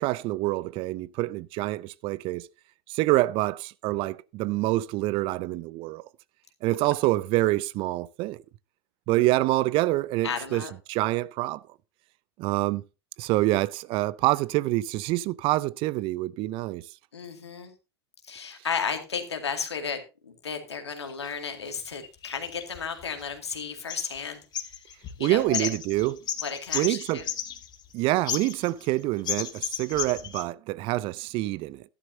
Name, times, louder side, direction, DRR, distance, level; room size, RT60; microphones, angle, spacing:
voice 1, 0.0-2.5 2.9-6.0 6.6-8.4 9.1-11.6 12.4-12.8 13.2-16.8 25.2-26.2 26.7-27.2 27.9-31.8, right 18 dB, 40° right, 0.5 m, -26 dB
voice 2, 10.2-10.7 17.1-17.7 18.2-24.9 25.2-25.7 26.4-27.3, left 6 dB, 85° left, 2.2 m, -34 dB
sound 1, 21.1-21.3 22.0-23.5 23.9-24.3 24.5-27.9 28.2-28.9 29.3-30.4, left 9 dB, 30° left, 1.5 m, -34 dB
12.5 x 11.0 x 2.7 m
hypercardioid pair, 95°, 14 cm